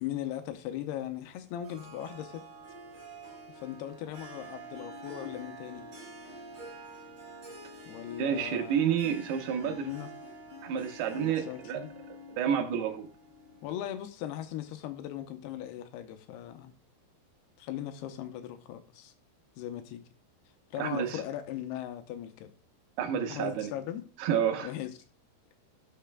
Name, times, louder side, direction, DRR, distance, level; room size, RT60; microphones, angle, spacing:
voice 1, 0.0-2.4 3.5-5.8 7.9-9.0 9.6-10.1 11.1-11.9 13.6-16.7 17.6-19.1 19.6-20.0 20.7-22.5 23.3-24.0 24.6-24.9, left 11 dB, 80° left, 8 dB, 2.6 m, -38 dB
Harp, 1.6-13.8, right 1 dB, 35° right, 4.1 m, -48 dB
voice 2, 8.2-9.9 10.6-11.8 12.1-13.1 20.8-21.2 23.0-23.7 24.2-24.7, right 8 dB, 75° right, 6 dB, 2.8 m, -30 dB
16.5 x 6.7 x 2.2 m, 0.40 s
omnidirectional pair, 4.8 m